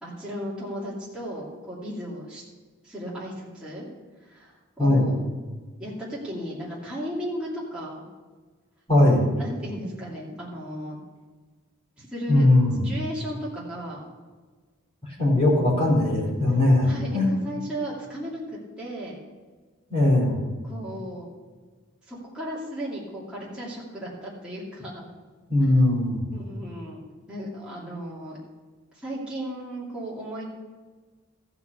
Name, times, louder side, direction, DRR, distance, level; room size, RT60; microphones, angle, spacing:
voice 1, 0.0-2.4 2.8-3.9 4.2-5.2 5.8-8.1 9.3-11.0 12.0-12.5 12.8-14.1 16.8-19.2 20.6-21.3 22.1-25.1 26.3-27.0 27.3-28.4 28.9-30.4, equal, 5° right, -7 dB, 2.6 m, -35 dB
voice 2, 4.8-5.1 8.9-9.3 12.3-12.9 15.2-17.3 19.9-20.4 25.5-26.2, left 1 dB, 30° left, -4 dB, 4.0 m, -20 dB
14.5 x 5.9 x 6.9 m, 1.4 s
head